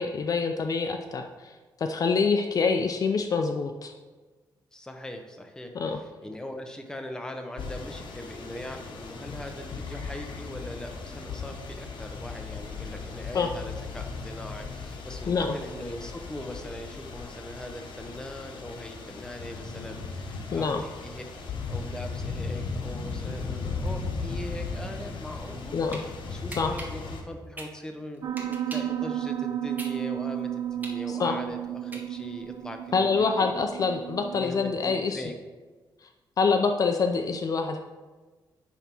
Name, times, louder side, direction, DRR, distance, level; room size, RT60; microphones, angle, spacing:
voice 1, 0.0-1.5 1.8-3.9 5.8-6.0 13.3-13.5 15.3-15.5 20.5-20.8 25.7-26.0 26.6-26.7 31.1-31.4 32.9-35.2 36.4-37.8, left 5 dB, 50° left, 5 dB, 0.4 m, -26 dB
voice 2, 4.7-21.2 21.7-25.8 26.3-33.5 34.3-35.3, left 1 dB, 10° left, 4 dB, 0.8 m, -40 dB
sound 1, 7.6-27.2, left 4 dB, 80° left, 1.0 m, -37 dB
sound 2, 25.9-26.0 26.5-29.0 29.4-32.4, right 1 dB, 20° right, 1.2 m, -42 dB
Piano, 28.2-34.4, right 11 dB, 60° right, 0.4 m, -33 dB
9.9 x 3.5 x 4.4 m, 1.3 s
cardioid pair, 125°, 8 cm